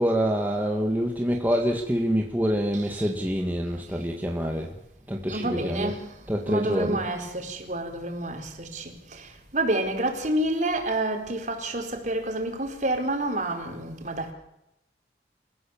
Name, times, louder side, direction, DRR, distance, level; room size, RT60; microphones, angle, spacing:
voice 1, 0.0-4.7 5.1-5.9 6.3-7.0, equal, 10° right, 1.9 m, -26 dB
voice 2, 2.7-3.1 5.3-6.1 6.5-14.3, right 1 dB, 45° right, 4.4 m, -29 dB
29.0 x 15.5 x 7.3 m
head